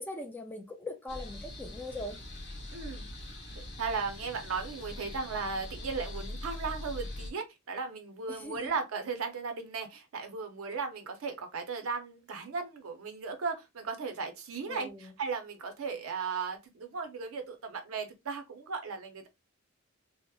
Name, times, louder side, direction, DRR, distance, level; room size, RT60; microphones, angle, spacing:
voice 1, 0.0-2.2 8.3-8.7 14.7-15.1, left 1 dB, 10° left, 0.3 m, -41 dB
sound 1, 1.1-7.3, left 1 dB, 55° left, 0.7 m, -42 dB
voice 2, 2.7-3.2 3.8-19.3, right 5 dB, 75° right, 0.6 m, -36 dB
2.7 x 2.0 x 2.2 m
head